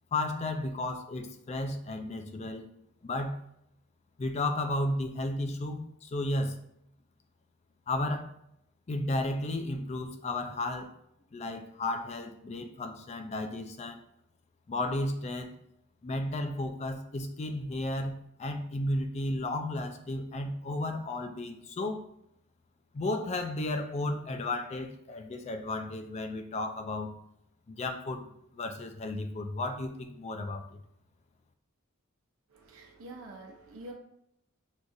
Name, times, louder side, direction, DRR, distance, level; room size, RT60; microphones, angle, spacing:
voice 1, 0.1-2.6 3.0-3.4 4.2-6.6 7.9-8.3 8.9-10.9 11.3-14.0 14.7-15.5 16.0-22.0 22.9-27.1 27.7-28.3 28.5-30.6, left 2 dB, 30° left, 7 dB, 0.3 m, -33 dB
voice 2, 32.5-33.9, right 2 dB, 70° right, 1 dB, 0.7 m, -46 dB
6.1 x 2.4 x 2.6 m, 0.76 s
head